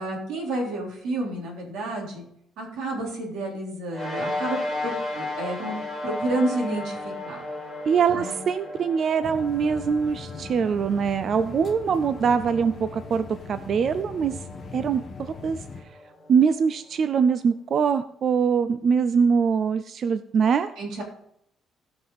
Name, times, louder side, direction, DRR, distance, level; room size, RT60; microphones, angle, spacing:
voice 1, 0.0-2.2 2.6-5.7 6.0-7.4 8.1-8.4 20.8-21.0, right 2 dB, 90° right, -1 dB, 3.7 m, -30 dB
sound 1, 3.9-16.6, left 2 dB, 20° right, 4.3 m, -35 dB
voice 2, 7.9-14.3 14.7-15.6 16.3-20.7, right 6 dB, 40° right, 12 dB, 0.4 m, -23 dB
sound 2, 9.2-15.8, left 5 dB, 25° left, 1.2 m, -40 dB
17.0 x 6.0 x 4.0 m, 0.73 s
cardioid pair, 175°, 0 cm